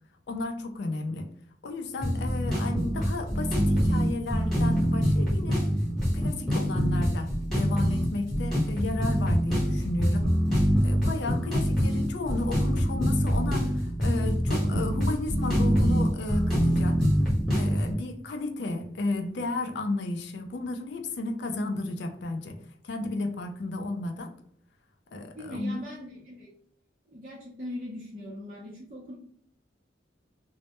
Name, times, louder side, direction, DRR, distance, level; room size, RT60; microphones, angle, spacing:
voice 1, 0.3-1.3 1.6-5.6 6.1-10.3 10.8-17.0 17.5-22.6 22.8-24.3 25.1-25.8, left 2 dB, 65° left, 5 dB, 0.4 m, -33 dB
sound 1, 2.0-17.9, equal, ahead, 1.0 m, -25 dB
voice 2, 25.4-26.5 27.1-29.1, left 1 dB, 35° right, -7 dB, 0.5 m, -40 dB
2.1 x 2.1 x 2.8 m, 0.67 s
head